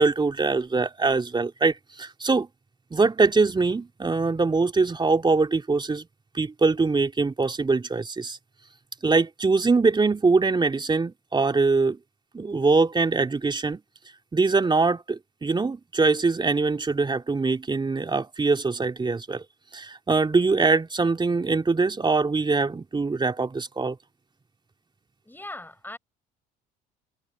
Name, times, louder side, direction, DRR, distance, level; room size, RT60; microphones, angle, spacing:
voice 1, 0.0-2.5 2.9-6.1 6.3-8.4 9.0-12.0 12.3-13.8 14.3-19.4 19.7-24.0, right 4 dB, 20° right, 3.0 m, -23 dB
voice 2, 25.3-26.0, left 1 dB, 10° left, 7.5 m, -39 dB
hypercardioid pair, 65°, 21 cm